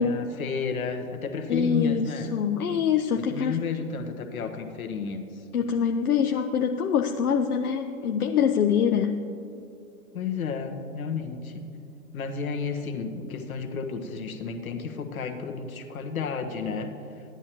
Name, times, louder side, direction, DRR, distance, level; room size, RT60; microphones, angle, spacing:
voice 1, 0.0-2.3 3.1-5.4 10.1-11.7 12.1-17.2, left 5 dB, 70° left, 5 dB, 1.3 m, -32 dB
voice 2, 1.5-3.6 5.5-9.3, left 7 dB, 85° left, 5 dB, 0.7 m, -24 dB
14.5 x 10.5 x 3.0 m, 2.7 s
hypercardioid pair, 120°, 43 cm